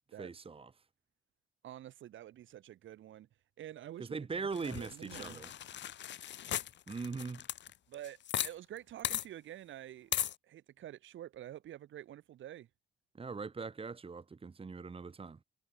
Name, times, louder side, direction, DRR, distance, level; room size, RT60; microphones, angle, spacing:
voice 1, 0.2-0.7 4.0-5.5 6.9-7.4 13.1-15.4, right 4 dB, 30° right, 1.9 m, -41 dB
voice 2, 1.6-3.3 3.6-5.4 7.9-10.1 10.4-12.7, right 12 dB, 75° right, 3.8 m, -48 dB
sound 1, 4.6-8.5 8.8-8.9 9.0-9.2 10.1-10.3, left 11 dB, 65° left, 1.4 m, -37 dB
cardioid pair, 90°, 20 cm